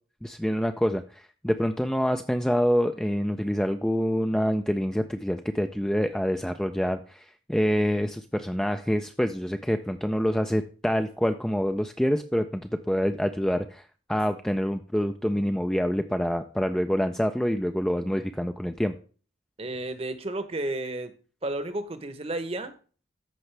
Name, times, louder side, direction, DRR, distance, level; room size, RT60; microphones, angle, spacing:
voice 1, 0.2-18.9, equal, 5° left, 6 dB, 0.3 m, -26 dB
voice 2, 19.6-21.1 21.4-22.7, right 2 dB, 30° right, 11 dB, 0.9 m, -32 dB
13.5 x 5.4 x 3.3 m, 0.38 s
head